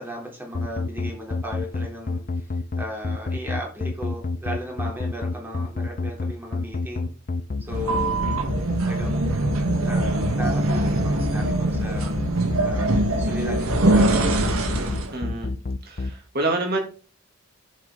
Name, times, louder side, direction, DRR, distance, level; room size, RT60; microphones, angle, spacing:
voice 1, 0.0-7.1 7.6-8.3 8.9-12.1 12.6-14.5, equal, 10° right, -1 dB, 3.5 m, -36 dB
sound 1, 0.5-16.1, left 3 dB, 40° left, 0.5 m, -28 dB
sound 2, 7.7-15.2, right 2 dB, 80° right, 1.8 m, -23 dB
voice 2, 15.1-15.5 15.8-16.8, right 2 dB, 45° right, 2 dB, 2.9 m, -27 dB
10.0 x 7.6 x 4.0 m, 0.38 s
head